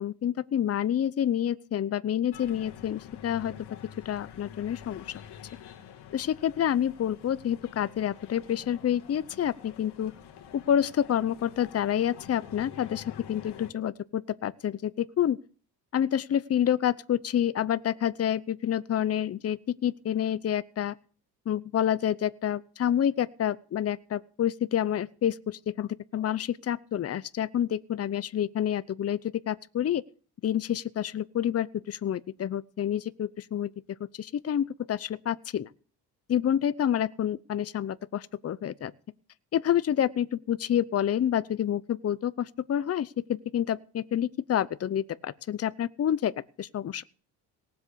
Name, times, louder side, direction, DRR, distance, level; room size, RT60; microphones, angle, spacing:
voice 1, 0.0-3.5 4.0-5.0 6.1-10.1 10.5-15.4 15.9-20.9 21.5-29.2 29.5-30.0 30.4-33.7 34.1-35.7 36.3-38.9 39.5-47.0, left 10 dB, 35° left, 0.8 m, -28 dB
sound 1, 2.3-13.7, left 9 dB, 70° left, 2.4 m, -47 dB
18.5 x 7.9 x 6.9 m
cardioid pair, 105°, 41 cm